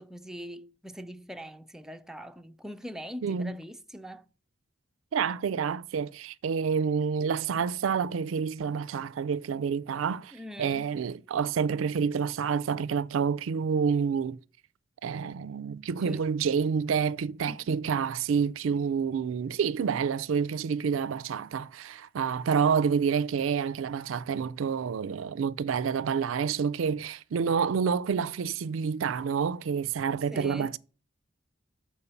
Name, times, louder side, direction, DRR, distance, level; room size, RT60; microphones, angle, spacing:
voice 1, 0.0-4.3 10.3-10.9 16.0-16.2 17.5-17.8 30.3-30.8, equal, 5° right, 0.3 m, -42 dB
voice 2, 3.2-3.6 5.1-14.4 15.0-30.8, right 6 dB, 90° right, 0.4 m, -28 dB
7.1 x 4.4 x 6.7 m
head